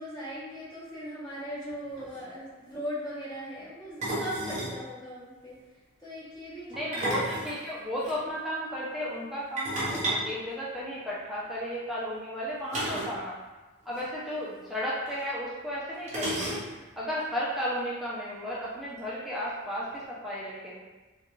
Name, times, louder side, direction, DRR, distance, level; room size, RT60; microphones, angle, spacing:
voice 1, 0.0-7.0 14.1-14.4, equal, 20° left, -9 dB, 0.9 m, -39 dB
sound 1, 1.7-1.8 2.0-2.2 4.0-4.8 6.7-8.1 9.6-11.2 12.7-13.2 13.5-13.6 13.9-14.0 15.1-15.2 16.1-16.9, right 1 dB, 35° right, 0.8 m, -32 dB
voice 2, 6.8-13.4 13.9-16.6 17.0-20.8, equal, ahead, -8 dB, 0.4 m, -34 dB
2.3 x 2.2 x 2.9 m, 1.2 s
head